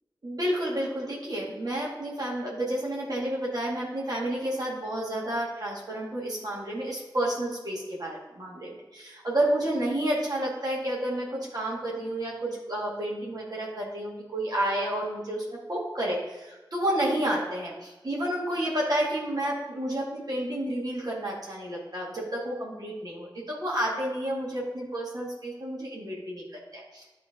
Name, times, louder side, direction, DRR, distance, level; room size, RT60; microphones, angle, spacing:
voice 1, 0.2-27.0, right 1 dB, 55° right, -5 dB, 2.0 m, -30 dB
10.5 x 3.8 x 3.8 m, 1.1 s
wide cardioid pair, 50°, 8 cm